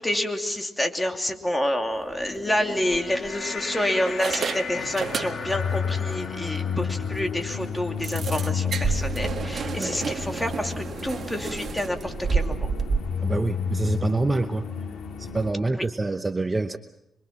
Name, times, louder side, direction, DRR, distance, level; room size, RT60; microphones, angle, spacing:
voice 1, 0.0-12.6 15.7-15.8, left 1 dB, 10° left, 4 dB, 2.8 m, -28 dB
sound 1, 2.0-8.5, left 5 dB, 50° left, 2.8 m, -38 dB
sound 2, 2.0-2.2 2.9-3.6 4.1-5.7 6.0-6.2 6.6-6.7 7.0-7.1 8.0-13.0, right 5 dB, 55° right, 1.5 m, -30 dB
sound 3, 4.7-15.5, left 6 dB, 85° left, 2.4 m, -31 dB
voice 2, 13.2-14.7 15.2-16.8, right 3 dB, 20° right, 8 dB, 0.9 m, -26 dB
26.0 x 23.5 x 6.0 m, 0.80 s
cardioid pair, 95°, 0 cm